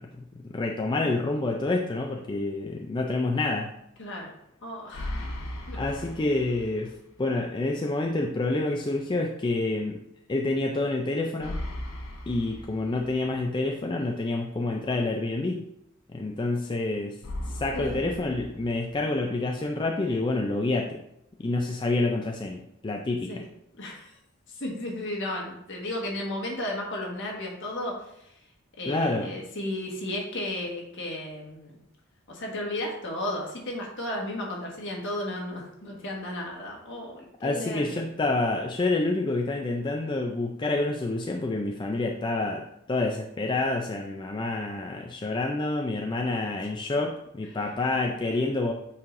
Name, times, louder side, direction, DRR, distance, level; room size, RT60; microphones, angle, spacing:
voice 1, 0.0-3.7 5.8-10.0 10.3-11.6 12.3-15.6 16.1-17.2 17.5-21.0 21.4-23.3 28.9-29.3 37.4-48.7, left 2 dB, 20° left, 2 dB, 0.4 m, -28 dB
voice 2, 4.0-4.3 4.6-5.3 5.7-5.8 17.7-18.0 23.3-23.4 23.7-24.1 24.5-28.4 28.8-31.8 32.3-38.0, left 1 dB, 60° left, -1 dB, 1.5 m, -34 dB
sound 1, 4.9-7.0 7.3-7.4 11.4-13.4 17.2-19.2, left 1 dB, 85° left, 0.9 m, -37 dB
8.4 x 4.7 x 2.6 m, 0.79 s
head